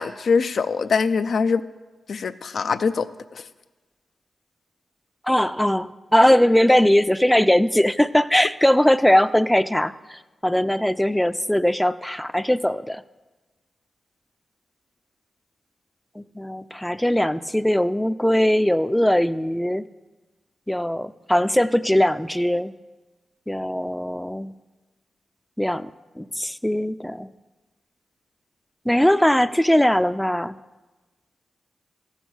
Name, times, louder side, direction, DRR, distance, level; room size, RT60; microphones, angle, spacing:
voice 1, 0.0-1.6 2.1-3.1 3.3-3.4, left 5 dB, 70° left, 11 dB, 0.5 m, -23 dB
voice 2, 5.3-13.0 16.2-19.8 20.7-22.7 23.5-24.5 25.6-25.9 26.2-27.3 28.9-30.6, left 1 dB, 5° left, 13 dB, 0.4 m, -20 dB
14.0 x 7.2 x 6.2 m, 1.2 s
cardioid pair, 50°, 0 cm